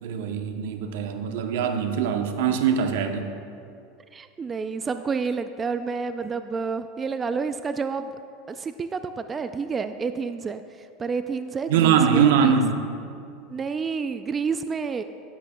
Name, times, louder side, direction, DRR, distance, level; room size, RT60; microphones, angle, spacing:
voice 1, 0.0-3.3 11.7-12.8, right 7 dB, 75° right, 6 dB, 0.8 m, -22 dB
voice 2, 4.1-8.1 8.5-12.6 13.5-15.0, right 5 dB, 25° right, 9 dB, 0.3 m, -29 dB
11.5 x 10.5 x 2.2 m, 2.4 s
supercardioid pair, 110°, 0 cm